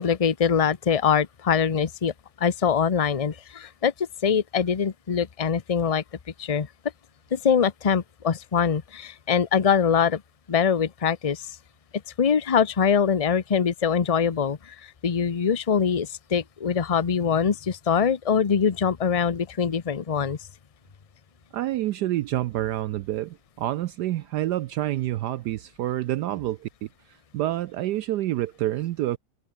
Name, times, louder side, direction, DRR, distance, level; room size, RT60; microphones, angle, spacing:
voice 1, 0.0-6.0 6.4-6.7 7.3-10.2 10.5-11.5 12.2-20.4, left 7 dB, 55° left, 0.3 m, -23 dB
voice 2, 21.5-29.2, right 14 dB, 70° right, 1.1 m, -28 dB
omnidirectional pair, 2.0 m